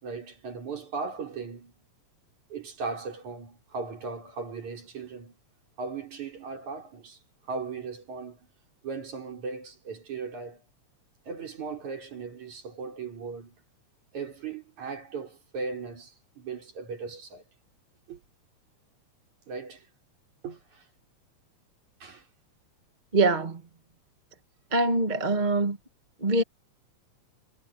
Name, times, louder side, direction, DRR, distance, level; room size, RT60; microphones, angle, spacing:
voice 1, 0.0-1.7 2.5-5.4 5.8-7.2 7.4-8.4 8.8-10.6 11.3-13.6 14.1-17.4 18.1-18.2 19.5-19.9 20.4-20.9 22.0-22.3, right 4 dB, 75° right, 6.4 m, -37 dB
voice 2, 23.1-23.6 24.7-25.8 26.2-26.4, right 2 dB, 20° right, 1.4 m, -23 dB
omnidirectional pair, 3.3 m